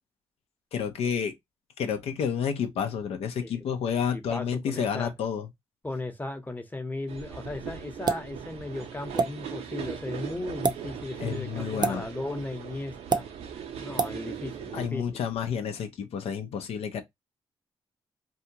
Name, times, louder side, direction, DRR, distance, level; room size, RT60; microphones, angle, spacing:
voice 1, 0.7-1.3 1.8-5.5 11.2-12.0 14.7-17.0, left 7 dB, 80° left, 0.5 m, -30 dB
voice 2, 3.9-5.1 5.8-13.2 13.8-15.0, left 2 dB, 15° left, 0.8 m, -36 dB
sound 1, 7.1-14.9, right 8 dB, 85° right, 0.6 m, -39 dB
sound 2, 8.1-8.3 9.2-9.3 10.5-10.8 11.8-12.0 13.1-13.2 14.0-14.1, right 5 dB, 45° right, 0.5 m, -25 dB
2.7 x 2.3 x 2.7 m
cardioid pair, 60°, 10 cm